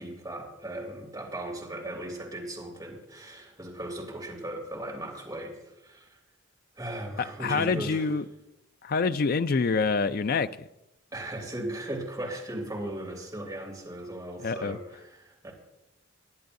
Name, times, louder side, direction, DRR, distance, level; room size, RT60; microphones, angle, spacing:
voice 1, 0.0-5.6 5.8-6.2 6.8-8.1 11.1-15.5, right 1 dB, 15° right, 3.0 m, -37 dB
voice 2, 7.4-8.2 8.8-10.5 14.4-14.8, left 4 dB, 45° left, 0.4 m, -26 dB
22.5 x 10.0 x 2.7 m
head